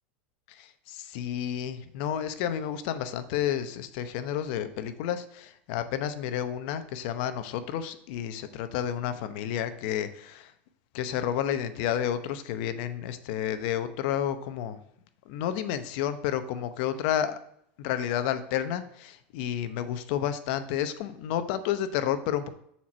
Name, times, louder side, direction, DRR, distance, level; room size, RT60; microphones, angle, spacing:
voice 1, 0.5-10.5 10.9-14.8 15.3-17.4 17.8-22.5, left 10 dB, 60° left, 11 dB, 0.8 m, -31 dB
7.1 x 4.6 x 6.0 m, 0.70 s
supercardioid pair, 145°, 6 cm